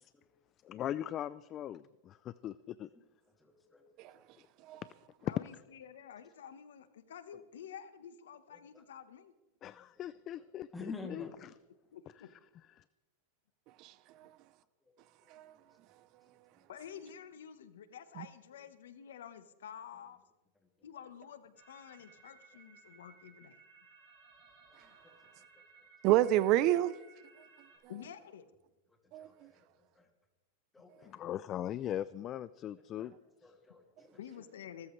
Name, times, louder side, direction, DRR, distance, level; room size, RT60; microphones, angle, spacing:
voice 1, 0.6-2.9 5.2-5.3 9.6-11.5 12.8-12.9 31.0-33.1, left 11 dB, 30° left, 0.4 m, -40 dB
voice 2, 3.4-3.8 4.1-4.3 8.5-8.8 9.8-9.9 10.7-11.3 15.2-15.9 24.7-24.8 29.2-29.7 30.0-30.1 30.7-31.4 33.0-33.1 33.4-34.2, left 3 dB, 10° left, 2.6 m, -49 dB
voice 3, 5.3-9.3 11.9-12.3 16.7-20.2 20.8-23.6 27.9-28.5 34.2-34.9, left 8 dB, 85° left, 1.2 m, -50 dB
voice 4, 13.8-14.4 15.3-15.6 18.2-18.3 26.0-27.0 29.1-29.5, right 14 dB, 45° right, 0.6 m, -29 dB
sound 1, 21.6-27.8, right 4 dB, 25° right, 6.7 m, -60 dB
25.5 x 13.5 x 3.3 m
supercardioid pair, 135°, 0 cm